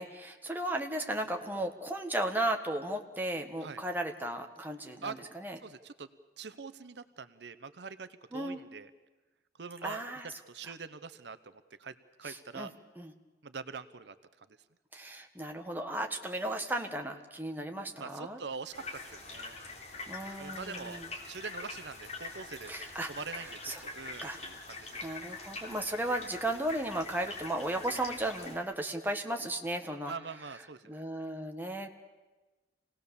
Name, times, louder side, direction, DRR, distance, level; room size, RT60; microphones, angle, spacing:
voice 1, 0.0-5.6 8.3-8.6 9.8-10.3 12.2-12.7 13.0-13.1 14.9-18.4 20.1-21.1 22.7-23.1 23.6-23.8 24.2-24.4 25.0-30.1 30.9-31.9, right 1 dB, 10° right, 3 dB, 1.4 m, -35 dB
voice 2, 5.6-6.1 6.4-8.9 9.6-12.7 13.4-14.5 18.0-19.6 20.4-22.7 23.1-24.9 30.1-31.0, right 5 dB, 80° right, 13 dB, 0.8 m, -44 dB
sound 1, 18.7-28.6, left 3 dB, 40° left, 3.0 m, -44 dB
26.5 x 18.0 x 7.0 m, 1.2 s
head